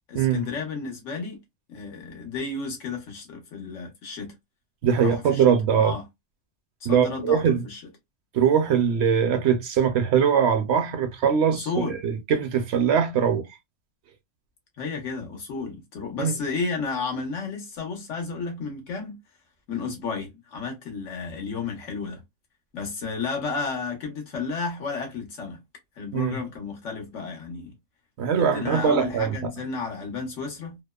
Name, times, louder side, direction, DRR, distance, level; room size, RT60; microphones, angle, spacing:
voice 1, 0.1-1.4 1.7-4.3 5.0-5.4 5.8-6.0 6.8-7.8 11.5-12.0 14.8-19.2 19.7-22.2 22.7-25.6 26.0-27.7 28.4-30.8, left 4 dB, 75° left, 1.3 m, -32 dB
voice 2, 4.8-5.9 6.8-7.6 8.3-13.4 16.2-16.3 26.1-26.4 28.2-29.4, right 7 dB, 65° right, 0.8 m, -22 dB
2.8 x 2.1 x 2.2 m
omnidirectional pair, 1.3 m